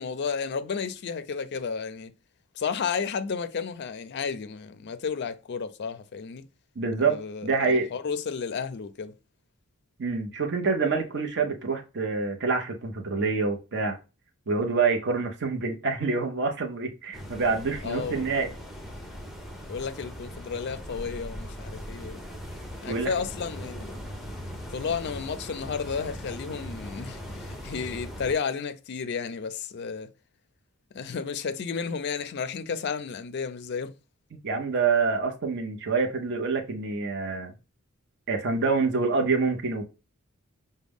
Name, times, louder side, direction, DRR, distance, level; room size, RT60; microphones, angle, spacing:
voice 1, 0.0-2.1 2.6-6.5 7.0-9.1 17.8-18.3 19.7-22.2 22.8-23.9 24.7-30.1 30.9-33.9, left 6 dB, 50° left, 0.4 m, -32 dB
voice 2, 6.8-7.9 10.0-14.0 14.5-18.5 22.9-23.1 34.4-37.5 38.3-39.9, right 4 dB, 55° right, 0.8 m, -26 dB
sound 1, 17.1-28.3, equal, ahead, 0.6 m, -40 dB
4.9 x 2.2 x 3.5 m
head